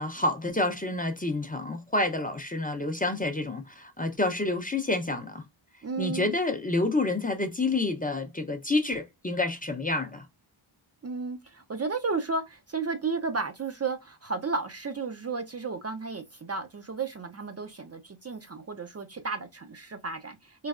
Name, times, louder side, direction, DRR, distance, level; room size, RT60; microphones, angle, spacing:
voice 1, 0.0-5.4 6.0-10.3, left 2 dB, 20° left, 0.5 m, -28 dB
voice 2, 5.8-6.4 11.0-20.7, right 4 dB, 35° right, 0.5 m, -33 dB
3.3 x 3.2 x 2.4 m
wide cardioid pair, 65°, 48 cm